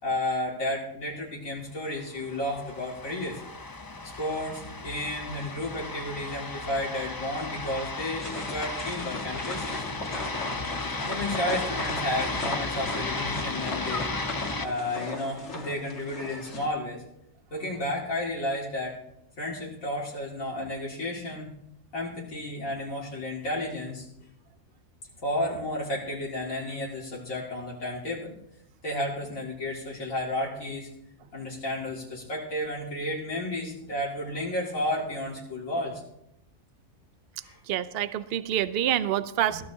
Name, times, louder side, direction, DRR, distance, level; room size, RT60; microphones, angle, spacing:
voice 1, 0.0-3.4 4.2-9.8 11.0-14.1 14.6-17.0 17.5-19.0 19.4-21.5 21.9-24.1 25.2-28.3 28.8-30.9 31.3-36.0 37.4-37.6 39.5-39.6, left 1 dB, 75° left, -4 dB, 2.7 m, -32 dB
sound 1, 2.1-14.7, left 3 dB, 25° left, 0.5 m, -35 dB
sound 2, 8.2-16.7, left 2 dB, 55° left, 2.1 m, -37 dB
voice 2, 37.7-39.6, right 11 dB, 55° right, 13 dB, 0.8 m, -27 dB
21.5 x 14.5 x 2.8 m, 0.80 s
omnidirectional pair, 1.4 m